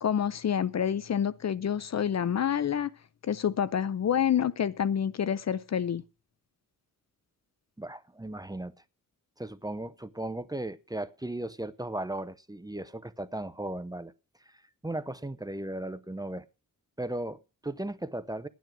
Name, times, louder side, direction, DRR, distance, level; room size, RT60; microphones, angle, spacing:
voice 1, 0.0-2.9 3.2-6.0, left 8 dB, 50° left, 0.6 m, -28 dB
voice 2, 7.8-8.7 9.4-14.1 14.5-16.5 17.0-18.5, right 1 dB, 10° right, 0.6 m, -36 dB
12.0 x 9.4 x 6.0 m
wide cardioid pair, 95°, 34 cm